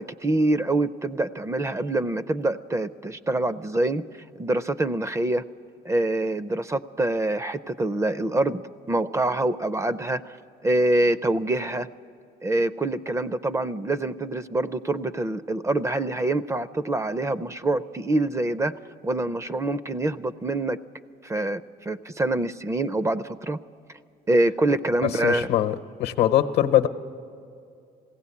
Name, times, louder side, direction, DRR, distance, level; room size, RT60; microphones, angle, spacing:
voice 1, 0.0-4.0 4.4-5.4 5.8-8.6 8.9-10.4 10.6-11.9 12.4-18.7 19.0-20.8 21.2-23.6 24.3-25.5, right 2 dB, 15° right, 15 dB, 0.4 m, -25 dB
voice 2, 25.2-26.9, left 11 dB, 75° left, 10 dB, 0.8 m, -22 dB
21.0 x 16.5 x 8.4 m, 2.4 s
cardioid pair, 110°, 17 cm